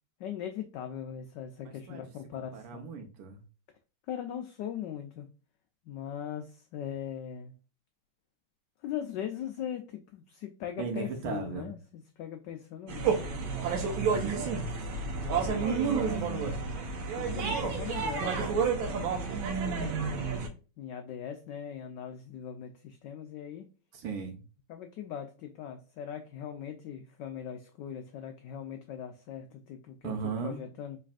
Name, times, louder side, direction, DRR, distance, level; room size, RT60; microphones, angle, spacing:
voice 1, 0.2-2.9 4.1-5.3 5.8-7.5 8.8-13.4 15.1-16.6 17.1-19.1 19.9-20.4 20.8-23.7 24.7-31.0, left 9 dB, 85° left, 0.9 m, -40 dB
voice 2, 1.6-2.0 2.4-3.4 10.8-11.7 14.0-14.5 15.6-16.6 17.3-17.6 23.9-24.4 30.0-30.6, right 6 dB, 90° right, 1.9 m, -37 dB
sound 1, 12.9-20.5, right 5 dB, 70° right, 1.5 m, -30 dB
4.0 x 3.2 x 2.4 m
omnidirectional pair, 2.4 m